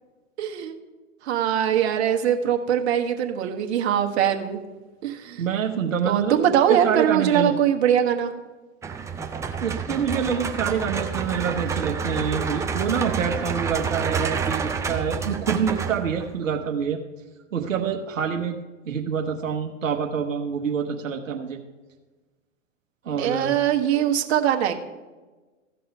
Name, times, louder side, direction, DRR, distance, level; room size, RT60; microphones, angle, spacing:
voice 1, 0.4-0.7 1.2-4.6 5.0-5.4 6.0-8.3 23.2-24.7, right 9 dB, 60° right, 5 dB, 1.3 m, -22 dB
voice 2, 5.4-6.4 6.7-7.5 9.6-17.0 17.5-18.6 18.9-21.6 23.0-23.5, right 7 dB, 80° right, 3 dB, 1.0 m, -26 dB
sound 1, 8.8-16.4, right 6 dB, 10° right, 0.4 m, -29 dB
14.5 x 5.5 x 5.5 m, 1.3 s
hypercardioid pair, 105°, 38 cm